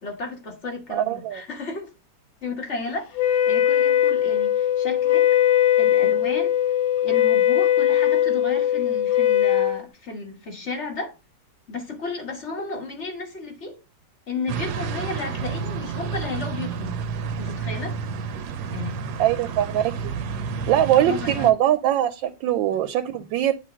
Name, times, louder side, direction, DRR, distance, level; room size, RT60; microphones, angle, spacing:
voice 1, 0.0-1.9 2.4-5.3 5.8-6.5 7.0-11.1 11.7-13.8 14.3-16.9 17.4-18.0 18.7-19.0 20.9-21.5, left 3 dB, 40° left, 1.6 m, -33 dB
voice 2, 0.9-1.4 19.2-20.1 20.7-23.5, right 11 dB, 85° right, 1.3 m, -22 dB
Wind instrument woodwind instrument, 3.2-9.8, left 11 dB, 80° left, 1.5 m, -20 dB
sound 1, 14.5-21.5, right 6 dB, 70° right, 1.1 m, -30 dB
8.4 x 2.9 x 5.0 m
omnidirectional pair, 2.0 m